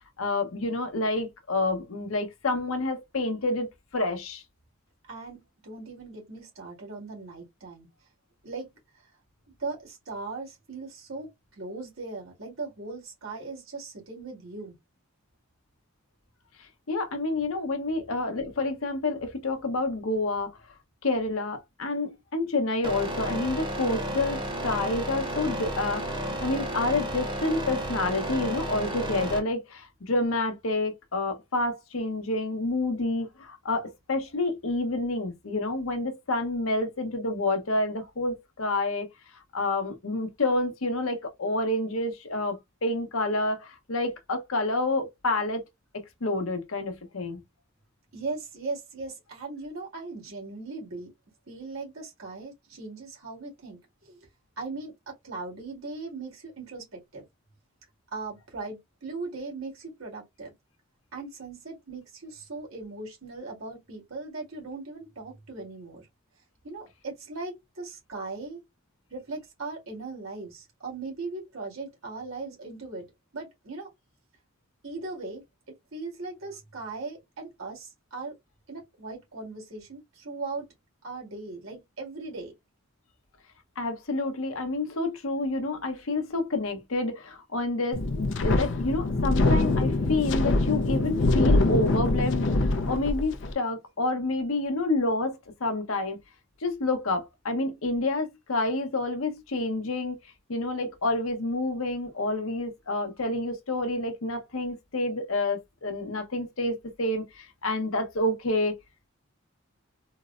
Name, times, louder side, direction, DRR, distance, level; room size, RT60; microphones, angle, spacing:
voice 1, 0.2-3.7 3.9-4.4 16.9-20.5 21.0-39.1 39.5-45.6 46.2-47.4 83.8-96.2 96.6-100.2 100.5-108.7, left 2 dB, 85° left, 0.8 m, -28 dB
voice 2, 5.1-7.9 8.4-8.7 9.6-14.7 17.9-18.0 48.1-51.1 51.5-54.3 54.6-57.2 58.1-60.5 61.1-66.1 66.6-68.6 69.1-73.9 74.8-75.4 75.9-78.4 78.7-80.7 81.0-82.5, right 3 dB, 85° right, 1.9 m, -39 dB
sound 1, 22.8-29.4, right 1 dB, 25° right, 0.8 m, -32 dB
Wind, 87.9-93.5, left 2 dB, 60° left, 0.5 m, -24 dB
3.8 x 2.1 x 2.4 m
head